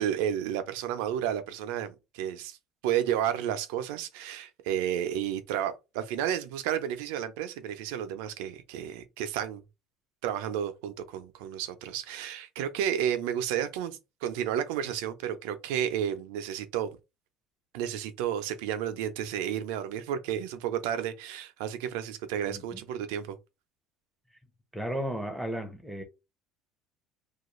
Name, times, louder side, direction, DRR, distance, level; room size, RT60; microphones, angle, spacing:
voice 1, 0.0-2.6 2.8-9.6 10.2-17.0 17.7-23.4, right 10 dB, 90° right, 0.4 m, -32 dB
voice 2, 22.5-22.8 24.7-26.0, equal, ahead, 0.5 m, -34 dB
2.3 x 2.3 x 3.0 m
cardioid pair, 155°, 0 cm